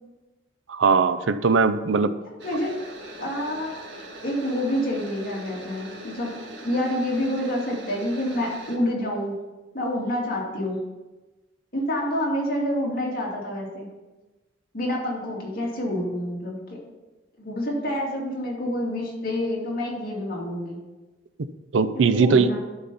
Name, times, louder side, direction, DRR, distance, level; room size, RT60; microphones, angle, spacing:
voice 1, 0.7-2.1 21.4-22.5, right 4 dB, 90° right, 12 dB, 0.5 m, -20 dB
voice 2, 2.4-2.7 3.2-3.7 4.2-6.3 6.6-9.3 9.7-10.8 11.7-13.9 14.7-16.8 17.4-20.8 21.9-22.6, left 1 dB, 50° left, -3 dB, 2.5 m, -27 dB
sound 1, 2.4-8.8, right 1 dB, 70° right, 1.7 m, -41 dB
12.0 x 4.2 x 5.4 m, 1.1 s
head